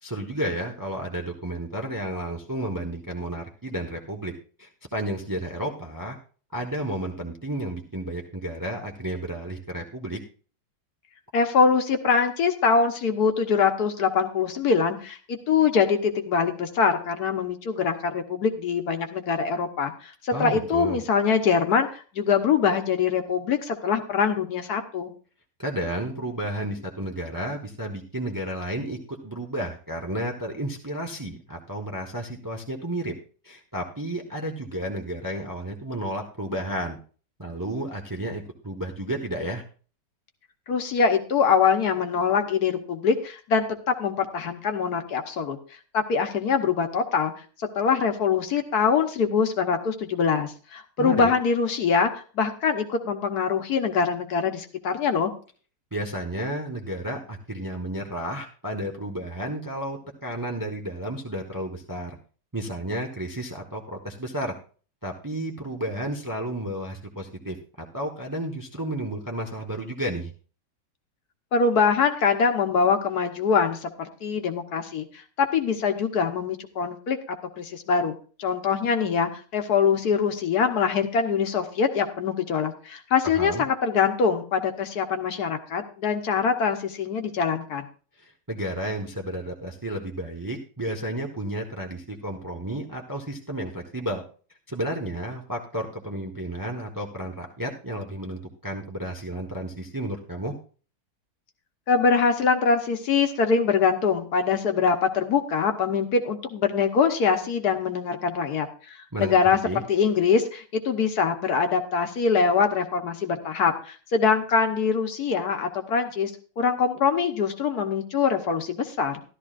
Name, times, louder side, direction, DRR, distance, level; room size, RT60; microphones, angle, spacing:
voice 1, 0.0-4.3 4.6-6.2 6.5-10.2 20.3-21.0 25.6-33.1 33.4-37.0 37.4-39.6 51.0-51.3 55.9-62.2 62.5-64.5 65.0-70.3 83.2-83.7 88.2-94.2 94.7-100.5 109.1-109.3 109.6-109.8, right 1 dB, 15° right, 2 dB, 0.9 m, -32 dB
voice 2, 11.3-25.1 40.7-45.6 45.9-47.3 47.6-55.3 71.5-78.1 78.4-87.8 101.9-109.6 109.9-119.2, left 5 dB, 65° left, 6 dB, 1.5 m, -23 dB
13.5 x 12.0 x 2.5 m, 0.39 s
omnidirectional pair, 1.9 m